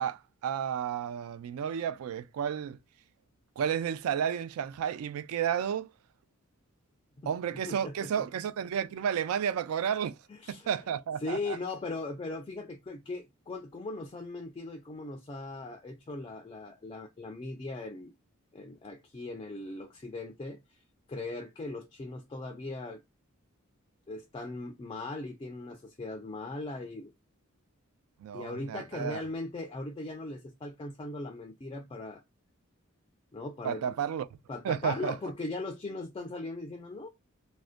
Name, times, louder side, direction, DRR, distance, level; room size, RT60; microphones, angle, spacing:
voice 1, 0.0-2.8 3.6-5.9 7.3-10.2 10.5-11.6 28.2-29.2 33.6-34.3 34.6-35.2, right 8 dB, 80° right, 0.3 m, -32 dB
voice 2, 7.7-8.1 10.3-10.7 11.2-18.1 18.5-20.8 21.1-23.0 24.1-27.1 28.3-32.2 33.3-33.9 34.5-37.1, left 2 dB, 25° left, 0.3 m, -39 dB
2.5 x 2.1 x 2.4 m
head